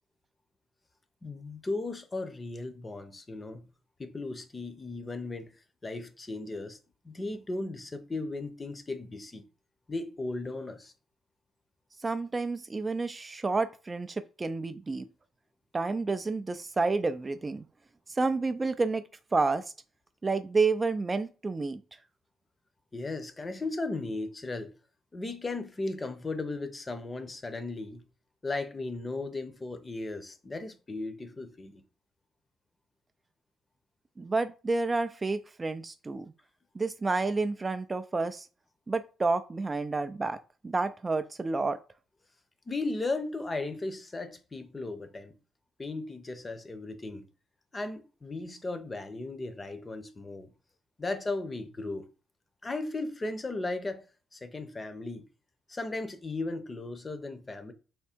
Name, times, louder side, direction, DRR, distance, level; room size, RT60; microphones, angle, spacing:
voice 1, 1.2-3.7 4.0-5.5 5.8-6.8 7.0-9.4 9.9-10.9 22.9-24.7 25.1-28.0 28.4-31.8 42.7-45.3 45.8-47.3 47.7-50.5 51.0-52.1 52.6-54.1 54.3-55.3 55.7-57.7, left 2 dB, 25° left, 0.7 m, -36 dB
voice 2, 12.0-15.1 15.7-17.6 18.1-19.0 19.3-19.7 20.2-21.8 34.2-36.3 36.8-38.5 38.9-40.4 40.6-41.8, right 3 dB, 25° right, 0.3 m, -29 dB
3.6 x 3.2 x 4.3 m
cardioid pair, 90°, 0 cm